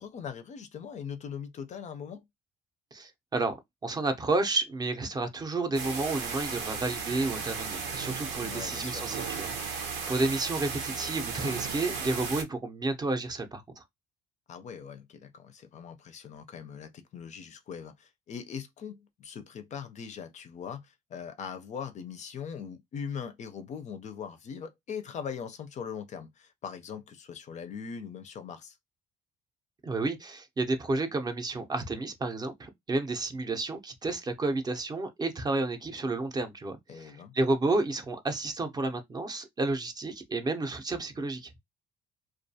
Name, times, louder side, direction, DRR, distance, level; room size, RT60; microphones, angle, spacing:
voice 1, 0.0-2.2 8.4-9.1 14.5-28.8 36.9-37.3, left 7 dB, 45° left, 0.4 m, -41 dB
voice 2, 2.9-3.5 3.8-13.8 29.8-41.5, right 2 dB, 25° right, 0.5 m, -31 dB
sound 1, 5.7-12.4, right 5 dB, 90° right, 0.7 m, -35 dB
2.3 x 2.2 x 2.6 m
cardioid pair, 110°, 17 cm